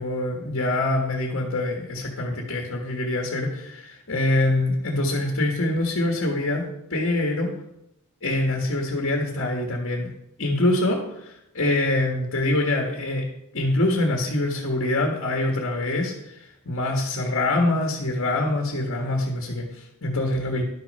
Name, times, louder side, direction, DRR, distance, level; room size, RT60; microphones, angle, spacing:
voice 1, 0.0-6.6 6.9-7.5 8.2-10.1 10.4-13.3 13.5-20.6, left 2 dB, 60° left, 1 dB, 1.6 m, -25 dB
11.5 x 6.6 x 5.4 m, 0.81 s
head